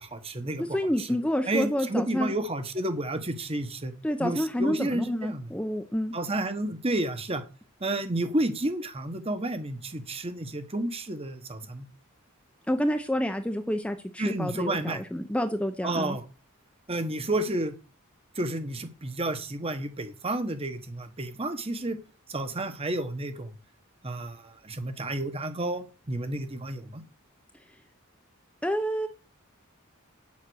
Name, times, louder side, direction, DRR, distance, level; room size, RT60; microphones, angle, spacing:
voice 1, 0.0-1.1 1.5-3.9 4.2-5.4 6.1-7.4 7.8-11.9 14.2-15.0 15.8-16.2 16.9-17.7 18.4-22.0 22.3-23.5 24.0-27.0, right 1 dB, 25° right, 9 dB, 1.2 m, -31 dB
voice 2, 0.6-2.3 4.0-6.1 12.7-16.2 28.6-29.1, equal, 5° left, 6 dB, 0.7 m, -28 dB
9.2 x 7.4 x 6.3 m, 0.35 s
head